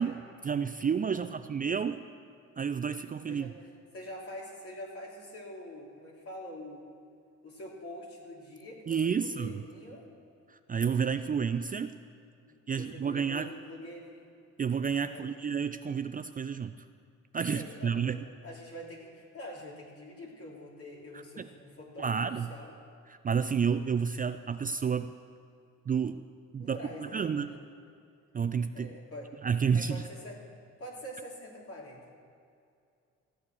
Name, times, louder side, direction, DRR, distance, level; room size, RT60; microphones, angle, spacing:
voice 1, 0.0-2.0 2.6-3.5 8.9-9.6 10.5-11.9 12.7-13.5 14.6-16.7 17.3-18.2 21.1-21.5 22.0-22.5 23.1-25.1 25.9-26.2 26.5-27.6 28.3-28.9 29.4-30.0, right 6 dB, 30° right, 10 dB, 0.4 m, -30 dB
voice 2, 3.9-6.9 7.4-10.1 12.5-14.3 15.1-15.4 17.5-22.8 26.6-27.6 28.7-29.3 29.7-30.4 30.8-32.1, left 1 dB, 50° left, -2 dB, 3.1 m, -45 dB
15.0 x 8.6 x 6.3 m, 2.4 s
cardioid pair, 90°, 30 cm